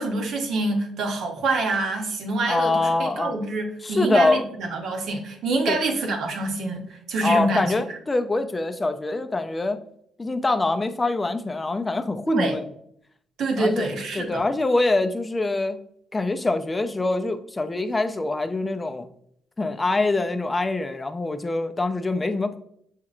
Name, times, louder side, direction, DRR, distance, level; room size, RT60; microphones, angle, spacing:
voice 1, 0.0-7.7 12.3-12.6 13.4-14.4, right 2 dB, 75° right, 2 dB, 0.9 m, -26 dB
voice 2, 2.5-3.3 3.8-4.4 5.7-5.8 7.2-9.8 10.2-12.6 13.6-13.9 14.1-15.8 16.1-19.1 19.6-22.6, left 2 dB, 20° left, 8 dB, 0.4 m, -24 dB
6.4 x 2.9 x 2.4 m, 0.68 s
cardioid pair, 90°, 0 cm